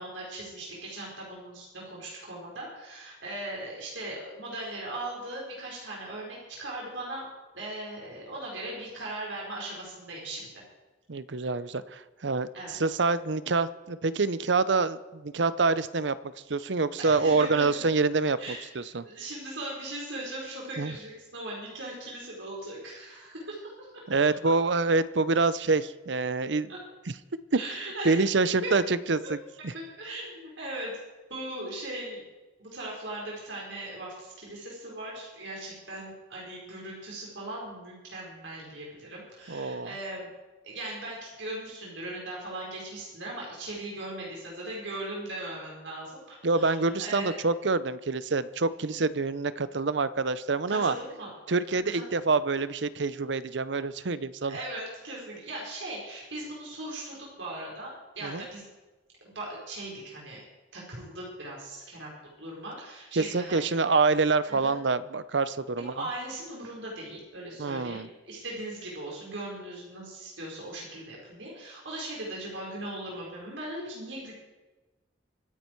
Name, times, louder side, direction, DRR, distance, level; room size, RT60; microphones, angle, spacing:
voice 1, 0.0-7.3 7.5-10.5 12.5-13.0 17.0-17.8 18.4-18.7 19.0-24.0 26.7-26.8 27.5-28.2 28.6-28.7 29.2-29.3 29.7-31.0 31.3-32.2 32.6-40.3 40.6-47.3 50.7-51.3 51.8-52.1 54.4-58.6 59.2-60.4 60.7-62.1 62.4-63.6 64.5-64.7 65.8-74.3, right 1 dB, 85° right, -3 dB, 4.8 m, -39 dB
voice 2, 11.1-16.2 16.5-19.0 20.8-20.9 24.1-26.7 28.0-29.4 29.6-29.7 39.5-39.9 46.4-50.9 51.5-54.6 58.2-58.4 63.2-65.9 67.6-68.1, right 3 dB, 70° right, 15 dB, 0.7 m, -26 dB
25.0 x 10.0 x 4.6 m, 1.2 s
head